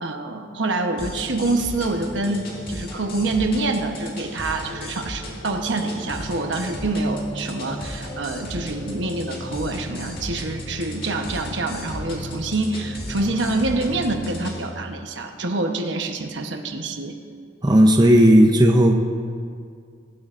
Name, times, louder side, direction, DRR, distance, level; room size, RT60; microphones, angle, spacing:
voice 1, 0.0-17.2, right 2 dB, 70° right, 5 dB, 1.1 m, -26 dB
sound 1, 1.0-14.7, left 1 dB, 50° left, 2.3 m, -35 dB
voice 2, 17.6-19.0, equal, 20° right, 3 dB, 0.7 m, -14 dB
21.0 x 12.0 x 2.6 m, 2.2 s
head